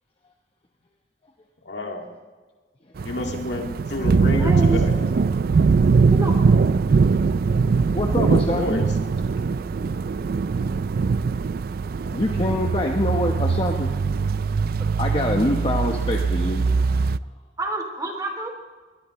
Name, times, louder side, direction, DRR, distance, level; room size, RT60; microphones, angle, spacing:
voice 1, 1.6-2.1 3.0-5.0 8.2-8.9, left 2 dB, 65° left, 1 dB, 2.3 m, -29 dB
sound 1, 3.0-17.2, right 4 dB, 55° right, 0.4 m, -21 dB
voice 2, 4.4-4.8 6.1-6.3 17.6-18.5, right 1 dB, 20° right, 2 dB, 2.9 m, -27 dB
voice 3, 7.9-8.8 12.1-13.9 15.0-16.6, left 1 dB, 30° left, 1 dB, 1.1 m, -25 dB
21.5 x 21.0 x 3.2 m, 1.4 s
head